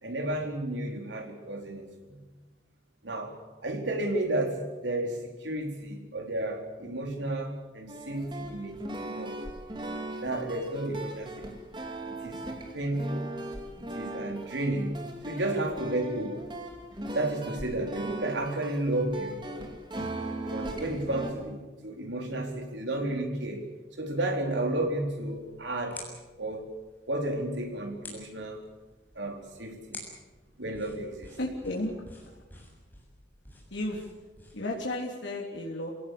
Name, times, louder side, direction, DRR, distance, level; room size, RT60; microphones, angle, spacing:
voice 1, 0.0-2.2 3.0-3.3 3.6-8.8 9.1-9.4 10.2-11.5 12.1-12.4 12.7-13.3 13.9-15.0 15.2-16.4 17.1-19.4 20.5-23.7 24.0-26.0 26.4-26.6 27.1-28.6 29.2-30.0 30.6-31.3, right 1 dB, 85° right, 3 dB, 4.3 m, -32 dB
sound 1, 7.9-21.3, right 1 dB, 25° right, 2.6 m, -39 dB
sound 2, 24.8-34.8, left 2 dB, 10° left, 7.2 m, -50 dB
voice 2, 31.4-31.9 32.3-32.4 33.7-34.1 34.5-35.9, left 1 dB, 85° left, -2 dB, 3.5 m, -33 dB
28.0 x 17.5 x 8.6 m, 1.2 s
head